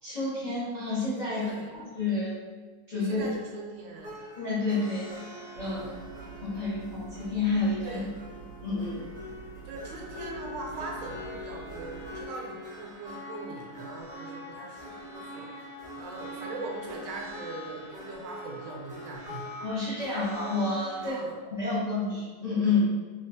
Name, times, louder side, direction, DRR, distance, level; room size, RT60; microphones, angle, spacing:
voice 1, 0.0-2.4 2.9-3.2 4.4-5.1 5.6-5.8 6.4-8.0 8.6-9.0 19.6-21.2 21.5-22.9, left 3 dB, 80° left, -10 dB, 0.3 m, -29 dB
voice 2, 1.4-1.7 3.0-4.1 5.6-5.9 7.8-8.1 9.6-19.5 21.1-21.4, right 3 dB, 75° right, 0 dB, 1.2 m, -41 dB
sound 1, 4.0-21.1, left 1 dB, 45° right, 0.5 m, -43 dB
sound 2, 5.5-12.3, right 4 dB, 60° left, 1.3 m, -47 dB
3.4 x 2.2 x 2.6 m, 1.3 s
omnidirectional pair, 2.0 m